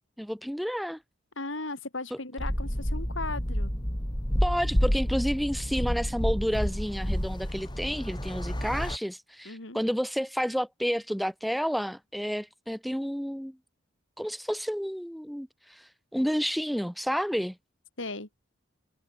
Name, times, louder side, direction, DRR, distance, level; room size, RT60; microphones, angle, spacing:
voice 1, 0.2-1.0 2.1-2.2 4.4-13.6 14.2-17.6, equal, ahead, 7.5 m, -30 dB
voice 2, 1.4-3.7 9.5-9.8 18.0-18.3, left 3 dB, 75° left, 3.8 m, -36 dB
sound 1, 2.4-9.0, equal, 20° left, 3.7 m, -29 dB
head